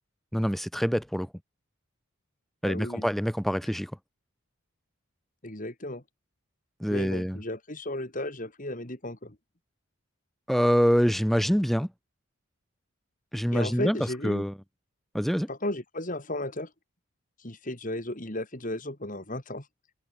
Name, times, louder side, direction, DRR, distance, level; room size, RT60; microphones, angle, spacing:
voice 1, 0.3-1.3 2.6-3.9 6.8-7.4 10.5-11.9 13.3-14.0 14.2-14.5 15.1-15.5, equal, ahead, 4.8 m, -25 dB
voice 2, 2.6-3.0 5.4-6.0 6.9-9.3 13.5-14.5 15.5-16.7 17.4-19.6, left 1 dB, 40° left, 3.3 m, -34 dB
head